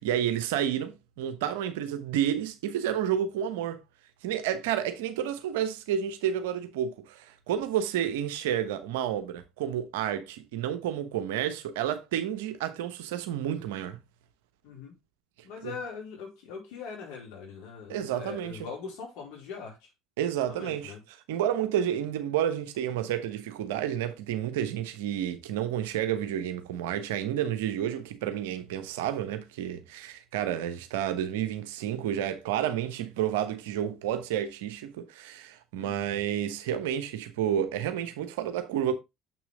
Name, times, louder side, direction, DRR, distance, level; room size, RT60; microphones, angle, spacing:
voice 1, 0.0-3.8 4.2-14.0 15.6-15.7 17.9-18.6 20.2-20.9 21.3-38.9, right 10 dB, 70° right, 1.0 m, -30 dB
voice 2, 14.6-15.0 15.4-19.9 20.5-21.0 35.8-36.1, left 6 dB, 60° left, 4.4 m, -41 dB
7.1 x 6.1 x 3.6 m
figure-of-eight pair, 60°, 0 cm